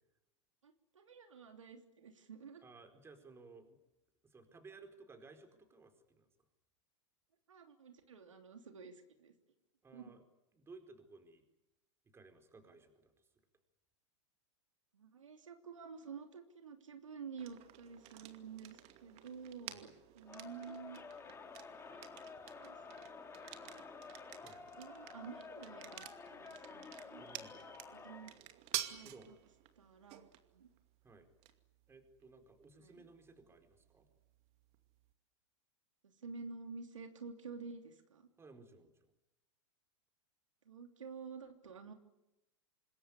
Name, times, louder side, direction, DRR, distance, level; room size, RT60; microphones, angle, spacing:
voice 1, 0.6-2.6 7.5-9.3 9.9-10.2 14.9-21.0 22.6-22.8 23.6-23.8 24.8-27.2 27.9-28.3 28.9-29.3 29.8-30.3 30.5-30.7 32.8-33.1 36.2-38.3 40.6-41.9, right 5 dB, 85° right, 5 dB, 3.1 m, -50 dB
voice 2, 2.6-3.8 4.2-6.3 9.8-10.2 10.6-11.4 12.1-13.3 19.7-19.9 24.4-24.6 27.2-27.7 29.0-29.3 31.0-31.3 31.9-34.1 38.4-39.1, right 3 dB, 15° right, 6 dB, 4.6 m, -58 dB
sound 1, 17.4-35.1, right 14 dB, 40° right, 2.4 m, -51 dB
Crowd, 20.2-28.4, left 5 dB, 15° left, 2.8 m, -51 dB
26.5 x 21.0 x 9.9 m, 0.92 s
hypercardioid pair, 110°, 16 cm